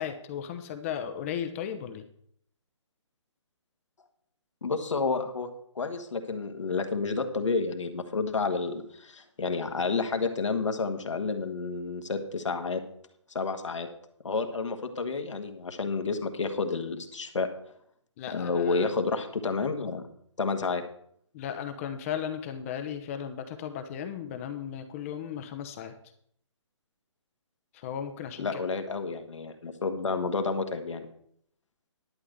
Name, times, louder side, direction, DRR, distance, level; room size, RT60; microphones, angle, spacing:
voice 1, 0.0-2.1 18.2-18.9 21.3-25.9 27.7-28.6, left 8 dB, 25° left, 7 dB, 0.8 m, -36 dB
voice 2, 4.6-5.5 5.7-12.8 13.3-13.9 14.2-17.5 18.3-20.0 20.4-20.8 28.4-31.1, left 4 dB, 75° left, 6 dB, 1.6 m, -30 dB
11.5 x 4.8 x 7.9 m, 0.67 s
figure-of-eight pair, 145°, 16 cm